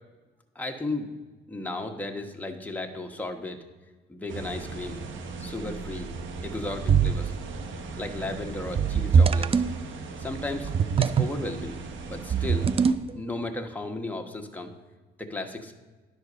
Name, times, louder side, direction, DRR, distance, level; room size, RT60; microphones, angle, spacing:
voice 1, 0.5-1.1 1.5-3.6 4.1-5.0 5.4-6.1 6.4-7.3 8.0-9.6 10.2-10.7 11.0-11.8 12.1-12.7 13.1-14.7 15.2-15.7, left 2 dB, 10° left, 2 dB, 1.2 m, -34 dB
sound 1, 4.3-12.9, right 3 dB, 75° right, 1.0 m, -38 dB
sound 2, 6.9-7.4 8.8-9.7 10.6-11.4 12.3-13.2, right 6 dB, 30° right, 0.4 m, -22 dB
11.0 x 4.6 x 6.7 m, 1.3 s
cardioid pair, 90°, 20 cm